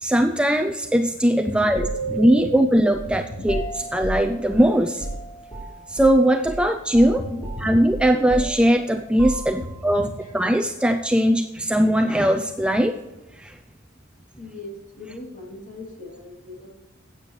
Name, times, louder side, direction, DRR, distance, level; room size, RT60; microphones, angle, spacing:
voice 1, 0.0-1.9 2.2-3.6 3.9-5.1 5.9-7.2 7.6-10.1 10.3-13.0 13.4-13.6, equal, 5° right, 6 dB, 0.4 m, -20 dB
sound 1, 1.7-6.2 6.5-6.7 6.9-9.9, right 2 dB, 15° left, 4.1 m, -33 dB
voice 2, 3.1-3.5 7.3-7.7 9.6-10.3 14.4-16.7, left 1 dB, 40° left, -1 dB, 3.0 m, -37 dB
14.5 x 9.0 x 3.2 m, 1.1 s
head